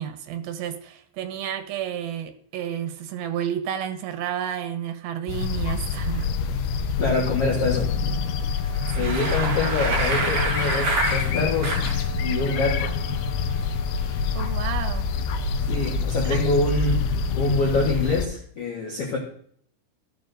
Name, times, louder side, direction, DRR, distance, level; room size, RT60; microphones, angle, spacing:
voice 1, 0.0-6.3 9.0-9.2 14.3-15.1 16.2-16.4, right 10 dB, 75° right, 7 dB, 2.6 m, -31 dB
sound 1, 5.3-18.3, left 5 dB, 85° left, 2.7 m, -26 dB
voice 2, 7.0-7.9 8.9-11.8 12.2-12.9 15.7-17.1 17.4-19.2, left 3 dB, 60° left, -2 dB, 1.6 m, -25 dB
Wind instrument woodwind instrument, 7.4-16.7, left 1 dB, 35° right, 4.4 m, -43 dB
Bicycle, 8.7-12.0, right 3 dB, 50° right, 3.5 m, -27 dB
14.0 x 6.9 x 2.5 m, 0.62 s
omnidirectional pair, 4.5 m